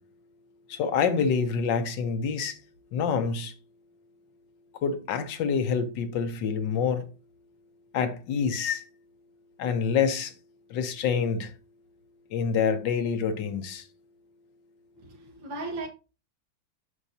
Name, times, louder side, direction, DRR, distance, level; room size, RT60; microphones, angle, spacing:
voice 1, 0.7-2.6 2.9-3.5 4.8-7.1 7.9-8.8 9.6-10.3 10.7-11.5 12.3-13.8, left 6 dB, 75° left, 1.5 m, -27 dB
voice 2, 15.0-15.9, right 2 dB, 75° right, 2.3 m, -36 dB
8.0 x 6.4 x 2.8 m
omnidirectional pair, 2.0 m